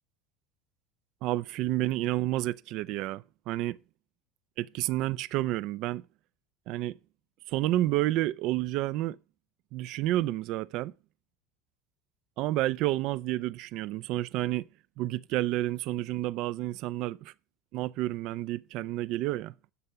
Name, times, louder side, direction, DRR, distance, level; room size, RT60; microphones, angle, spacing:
voice 1, 1.2-3.8 4.6-6.1 6.7-7.0 7.5-9.2 9.7-10.9 12.4-14.7 15.0-17.3 17.7-19.5, right 15 dB, 45° right, 0.5 m, -30 dB
11.0 x 6.7 x 5.8 m
cardioid pair, 170°, 0 cm